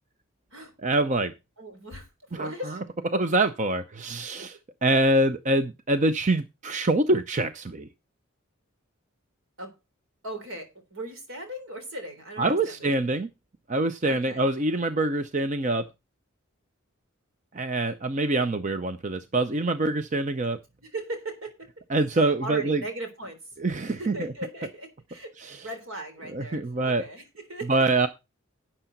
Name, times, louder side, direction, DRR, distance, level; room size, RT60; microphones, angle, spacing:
voice 1, 0.8-1.3 2.3-2.8 3.1-7.9 12.4-13.3 13.7-15.9 17.5-20.6 21.9-22.8 23.6-24.3 25.4-25.7 26.3-27.0 27.7-28.1, right 2 dB, 35° right, 0.6 m, -25 dB
voice 2, 1.6-2.8 9.6-9.7 10.2-12.9 14.0-14.5 20.8-21.7 22.1-23.4 23.9-27.9, right 1 dB, 75° right, 3.7 m, -38 dB
11.5 x 8.0 x 4.0 m
head